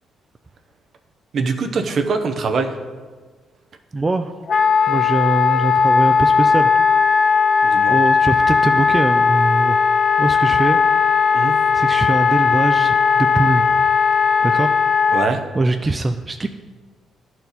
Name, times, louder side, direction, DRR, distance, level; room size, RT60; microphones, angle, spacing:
voice 1, 1.3-2.7 7.6-8.0 11.3-11.5 15.1-15.4, right 4 dB, 55° right, 6 dB, 0.8 m, -22 dB
voice 2, 3.9-4.3 4.9-6.7 7.1-7.2 7.6-9.8 10.2-10.8 11.1-11.2 11.7-13.9 14.4-14.7 15.6-16.5, right 2 dB, 25° right, 6 dB, 0.4 m, -22 dB
Wind instrument woodwind instrument, 4.5-15.3, left 6 dB, 45° left, 0.4 m, -17 dB
11.5 x 4.4 x 4.1 m, 1.4 s
cardioid pair, 90°, 0 cm